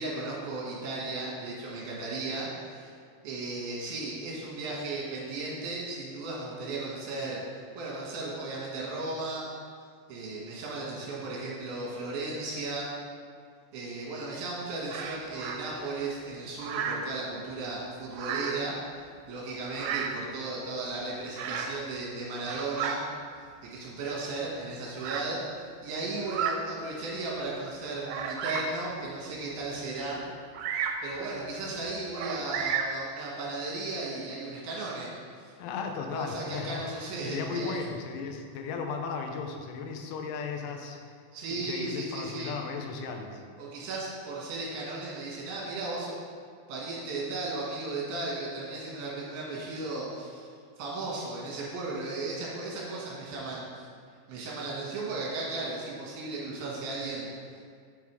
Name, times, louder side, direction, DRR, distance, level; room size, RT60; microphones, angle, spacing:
voice 1, 0.0-2.9 3.2-7.4 7.8-9.4 10.1-12.9 13.7-18.9 19.3-23.0 23.6-30.2 31.0-35.1 35.4-35.5 36.1-37.8 41.3-42.5 43.6-46.1 46.7-50.5 50.8-53.9 54.3-57.3, right 2 dB, 65° right, -5 dB, 3.5 m, -35 dB
Bird vocalization bird call bird song, 14.9-15.6 16.6-17.1 18.1-18.7 19.7-20.2 21.4-21.8 22.3-23.0 23.9-24.0 25.0-25.3 26.2-26.6 27.2-27.3 28.1-28.8 30.5-31.1 32.2-33.0, right 7 dB, 85° right, 2.9 m, -33 dB
voice 2, 35.6-41.0 41.5-43.4, left 5 dB, 80° left, 3 dB, 2.8 m, -36 dB
7.4 x 4.8 x 4.7 m, 2.2 s
omnidirectional pair, 5.1 m